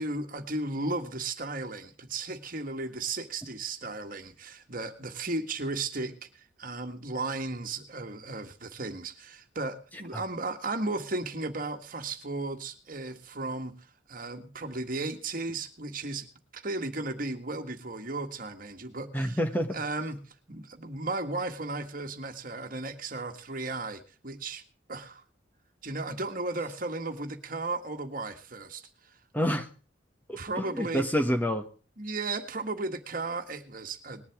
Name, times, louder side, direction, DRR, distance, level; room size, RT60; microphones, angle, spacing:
voice 1, 0.0-6.3 6.6-13.7 14.1-16.3 16.5-19.4 19.7-20.2 20.5-24.6 24.9-25.2 25.8-28.9 30.4-31.0 32.0-34.2, right 2 dB, 50° right, 6 dB, 1.7 m, -35 dB
voice 2, 19.1-19.8 29.3-29.7 30.3-31.7, equal, 10° left, 6 dB, 1.3 m, -28 dB
20.0 x 11.0 x 3.5 m, 0.35 s
head